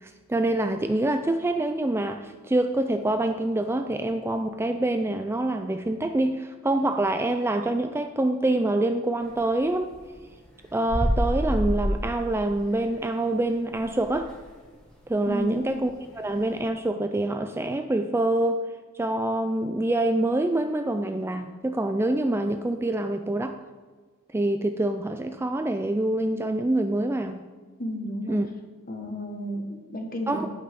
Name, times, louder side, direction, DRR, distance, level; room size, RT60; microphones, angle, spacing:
voice 1, 0.0-9.9 10.7-14.3 15.1-18.6 19.0-23.6 24.3-27.5 28.3-28.5 30.3-30.5, right 1 dB, 10° right, 7 dB, 0.3 m, -26 dB
sound 1, 9.2-14.5 14.9-15.0 15.3-16.6, equal, 5° left, 2.0 m, -28 dB
voice 2, 15.3-15.6 27.8-28.4 28.9-30.5, equal, 40° left, 3 dB, 1.5 m, -32 dB
17.0 x 5.9 x 3.7 m, 1.4 s
head